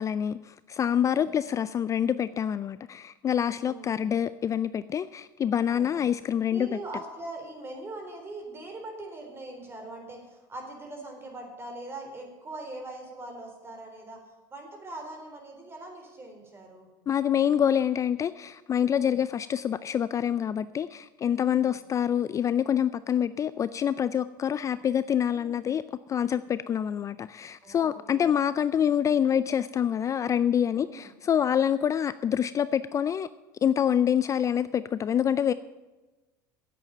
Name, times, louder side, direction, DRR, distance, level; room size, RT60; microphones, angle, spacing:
voice 1, 0.0-6.7 17.1-25.8 26.1-33.3 33.6-35.5, left 9 dB, 30° left, 15 dB, 0.4 m, -26 dB
voice 2, 1.0-1.3 3.6-4.1 5.7-6.0 6.5-14.2 14.5-16.9 18.9-19.2 21.5-21.8 25.3-25.7 27.6-28.4 30.7-31.1, right 2 dB, 25° right, 3 dB, 3.9 m, -42 dB
9.4 x 8.5 x 8.9 m, 1.2 s
supercardioid pair, 95°, 10 cm